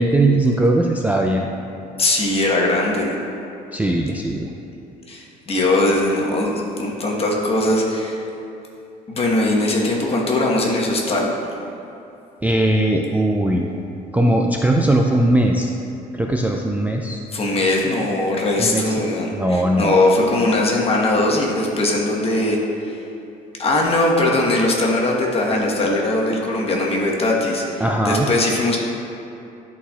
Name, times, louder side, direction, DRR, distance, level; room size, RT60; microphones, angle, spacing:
voice 1, 0.0-1.5 3.7-4.5 12.4-13.7 14.1-15.7 16.1-17.2 18.6-19.1 19.3-20.0 27.8-28.3, right 1 dB, 10° right, 0 dB, 0.3 m, -19 dB
voice 2, 2.0-3.1 5.1-8.2 9.1-11.3 17.3-23.0 23.6-28.8, left 2 dB, 35° left, -2 dB, 1.1 m, -20 dB
11.5 x 4.2 x 2.3 m, 2.8 s
cardioid pair, 110°, 17 cm